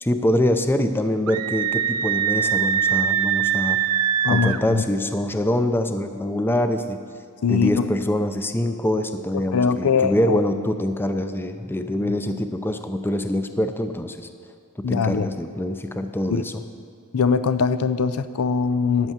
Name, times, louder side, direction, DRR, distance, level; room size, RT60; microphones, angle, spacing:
voice 1, 0.0-3.8 4.3-7.0 7.5-14.3 14.8-16.6, left 1 dB, 10° left, 8 dB, 0.5 m, -24 dB
Screaming, 1.3-4.6, right 9 dB, 90° right, 0.4 m, -22 dB
voice 2, 4.2-4.8 7.4-7.8 9.5-10.4 12.0-12.1 14.8-15.3 16.3-16.4 17.1-19.1, left 5 dB, 85° left, 12 dB, 0.5 m, -22 dB
9.8 x 8.1 x 7.3 m, 2.2 s
head